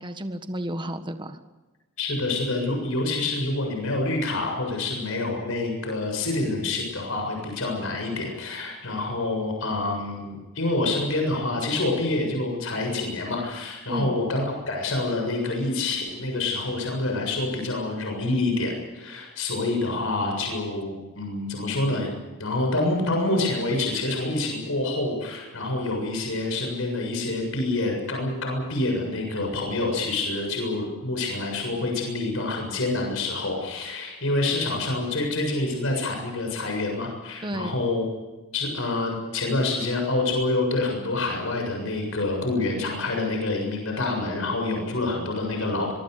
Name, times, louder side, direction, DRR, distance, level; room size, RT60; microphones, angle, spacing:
voice 1, 0.0-1.4 13.9-14.2 37.4-37.8, equal, 20° right, 8 dB, 1.5 m, -32 dB
voice 2, 2.0-22.1 22.4-38.0 38.5-45.9, left 2 dB, 70° left, 2 dB, 7.2 m, -27 dB
23.5 x 23.5 x 6.7 m, 1.2 s
head